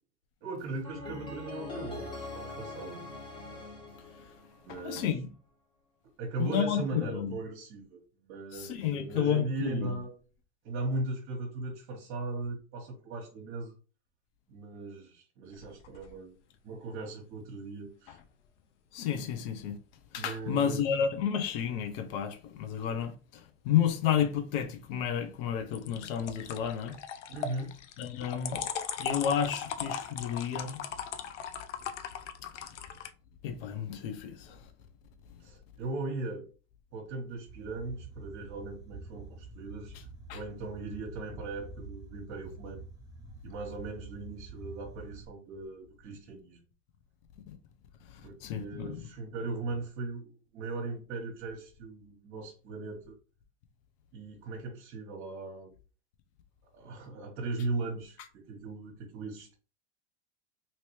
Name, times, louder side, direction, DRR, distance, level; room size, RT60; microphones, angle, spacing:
voice 1, 0.4-3.0 4.6-5.1 6.2-10.2 10.6-13.7 14.5-16.3 16.6-18.2 20.2-20.9 27.3-27.8 35.4-36.5 36.9-39.9 40.3-42.8 43.4-46.6 48.2-53.1 54.1-55.7 56.7-59.5, right 3 dB, 50° right, 1.1 m, -38 dB
sound 1, 0.8-4.9, left 3 dB, 15° left, 1.4 m, -42 dB
voice 2, 4.7-5.3 6.4-7.3 8.5-9.9 18.9-19.8 20.1-26.9 28.0-28.6 29.0-30.8 33.4-34.6 40.3-40.4 48.4-49.0, left 8 dB, 55° left, 0.8 m, -31 dB
sound 2, 15.5-16.1 25.7-33.1, left 8 dB, 85° left, 0.6 m, -39 dB
sound 3, 37.5-45.3, right 3 dB, 10° right, 1.0 m, -47 dB
2.9 x 2.9 x 3.1 m
hypercardioid pair, 95°, 34 cm